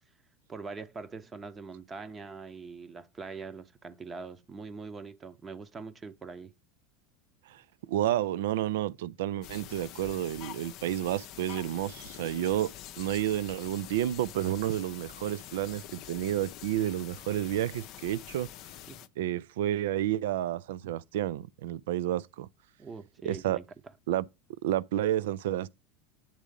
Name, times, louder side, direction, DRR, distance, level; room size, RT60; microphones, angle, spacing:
voice 1, 0.5-6.5 18.9-19.0 22.8-23.6, right 4 dB, 20° right, 0.8 m, -43 dB
voice 2, 7.5-12.7 13.0-18.5 19.2-22.5 23.2-23.6 24.1-24.3 24.6-25.8, right 12 dB, 65° right, 0.4 m, -30 dB
sound 1, 9.4-19.1, left 12 dB, 50° left, 0.5 m, -46 dB
8.8 x 3.6 x 5.2 m
figure-of-eight pair, 80°, 0 cm